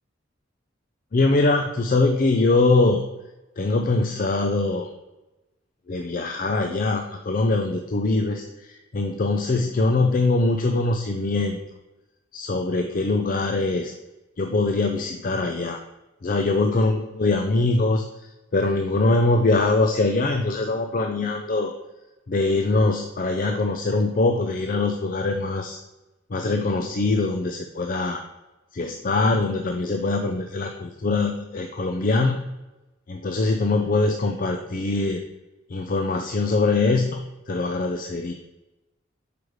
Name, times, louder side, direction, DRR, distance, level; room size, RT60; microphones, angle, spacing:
voice 1, 1.1-3.0 3.6-4.9 5.9-8.4 8.9-11.6 12.3-13.9 14.4-15.8 16.2-18.0 18.5-21.7 22.3-25.8 26.3-28.2 28.7-32.5 33.1-35.2 35.7-37.2 37.5-38.3, left 3 dB, 45° left, 4 dB, 0.5 m, -22 dB
6.3 x 5.0 x 4.7 m, 1.0 s
head